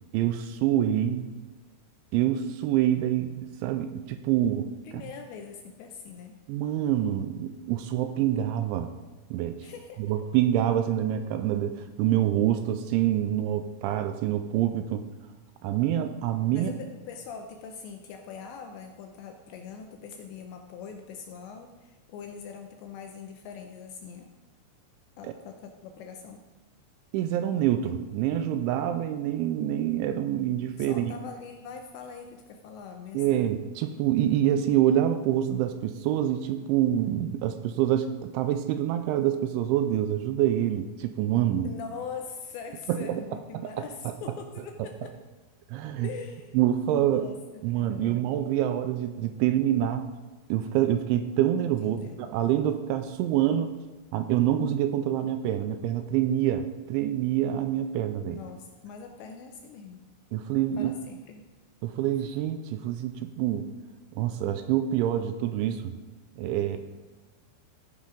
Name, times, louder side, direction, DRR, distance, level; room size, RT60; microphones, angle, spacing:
voice 1, 0.1-1.3 2.1-4.7 4.9-5.0 6.5-8.9 9.3-9.7 10.0-15.1 15.6-16.7 25.2-25.3 27.1-31.1 33.1-41.7 42.9-43.2 43.5-43.7 44.1-44.2 44.8-44.9 45.7-46.1 46.5-47.3 47.6-50.1 50.5-53.7 54.1-58.4 60.3-60.9 61.8-63.7 64.1-66.0 66.4-66.8, right 11 dB, 85° right, 9 dB, 2.8 m, -26 dB
voice 2, 4.9-6.4 9.6-10.0 16.5-24.3 25.2-26.4 30.8-33.5 41.6-45.1 46.0-46.6 47.0-48.1 51.8-52.2 58.2-60.0 60.8-61.4, left 6 dB, 80° left, 5 dB, 2.6 m, -42 dB
15.5 x 5.7 x 5.1 m, 1.2 s
omnidirectional pair, 5.7 m